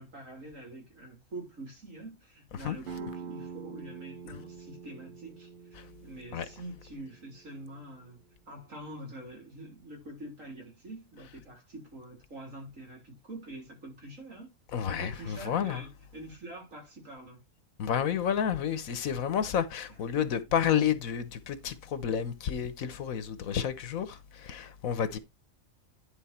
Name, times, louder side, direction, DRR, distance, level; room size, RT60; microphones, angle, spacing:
voice 1, 0.0-8.2 8.5-14.5 14.9-17.4 19.9-20.3, right 1 dB, 70° right, 4.0 m, -45 dB
sound 1, 2.9-8.3, right 6 dB, 55° right, 0.6 m, -46 dB
voice 2, 14.7-15.8 17.8-25.2, left 8 dB, 85° left, 1.4 m, -30 dB
10.5 x 4.3 x 4.4 m
omnidirectional pair, 1.4 m